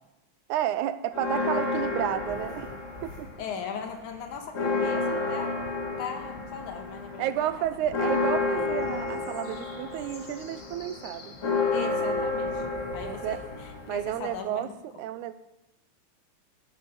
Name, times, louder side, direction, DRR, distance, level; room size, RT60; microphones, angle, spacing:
voice 1, 0.5-2.7 3.0-3.3 7.2-11.4 13.0-13.4 13.9-14.7 15.0-15.3, right 12 dB, 80° right, 12 dB, 2.0 m, -31 dB
sound 1, 1.1-3.5 3.9-14.4, left 3 dB, 40° left, 1.1 m, -30 dB
voice 2, 3.4-5.5 6.0-7.6 11.7-12.6 12.9-14.7, left 6 dB, 75° left, 5 dB, 2.6 m, -38 dB
11.0 x 8.9 x 5.9 m, 0.95 s
omnidirectional pair, 3.5 m